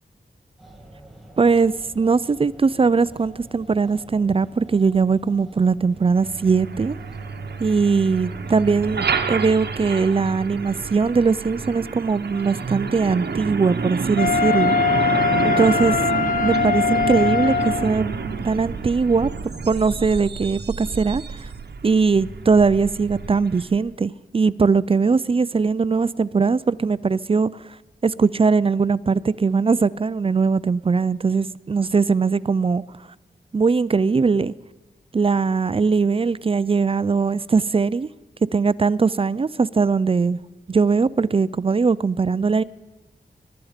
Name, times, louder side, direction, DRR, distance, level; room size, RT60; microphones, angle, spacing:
sound 1, 0.6-9.8, right 1 dB, ahead, 2.7 m, -47 dB
voice 1, 1.4-7.0 7.6-14.8 15.4-15.9 16.4-18.1 18.4-19.3 19.7-21.2 21.8-27.6 28.0-32.8 33.5-34.5 35.1-38.1 38.5-40.4 40.7-42.6, right 4 dB, 35° right, 0.4 m, -20 dB
Truck, 6.1-23.8, right 5 dB, 80° right, 1.0 m, -28 dB
Wind instrument woodwind instrument, 14.2-17.9, left 6 dB, 55° left, 0.4 m, -21 dB
22.0 x 12.0 x 5.0 m
wide cardioid pair, 105°, 17 cm